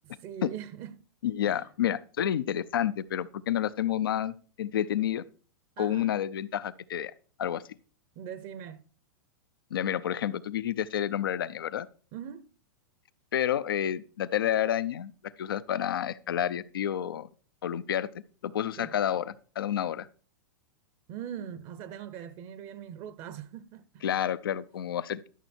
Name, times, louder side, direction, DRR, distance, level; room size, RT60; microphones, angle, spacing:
voice 1, 0.0-1.0 1.5-1.7 5.8-6.1 8.2-8.8 12.1-12.5 18.8-18.9 21.1-24.0, right 9 dB, 45° right, 0.7 m, -41 dB
voice 2, 1.2-4.3 4.6-5.2 5.8-7.1 7.4-7.6 9.7-11.9 13.3-15.1 15.4-17.3 17.6-18.1 18.4-20.1 24.0-25.3, left 10 dB, 85° left, 0.5 m, -29 dB
12.0 x 6.3 x 4.3 m
hypercardioid pair, 125°, 12 cm